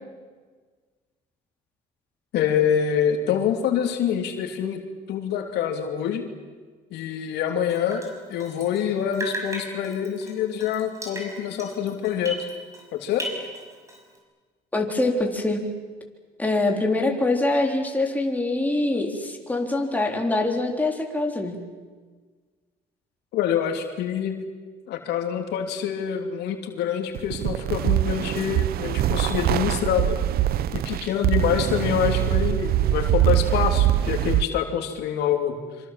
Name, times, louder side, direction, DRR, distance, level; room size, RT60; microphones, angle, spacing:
voice 1, 2.3-4.8 5.1-6.3 6.9-8.0 8.3-12.5 12.9-13.3 23.3-24.4 24.9-30.2 30.7-35.6, left 8 dB, 80° left, 4 dB, 3.0 m, -26 dB
Drip, 7.7-8.9 9.1-12.9 13.1-14.2, equal, 20° right, 6.1 m, -36 dB
voice 2, 14.7-15.6 16.4-21.6, left 2 dB, 10° left, 1 dB, 3.9 m, -24 dB
sound 1, 27.1-34.4, right 13 dB, 65° right, 0.7 m, -23 dB
26.0 x 25.5 x 7.6 m, 1.4 s
cardioid pair, 110°, 17 cm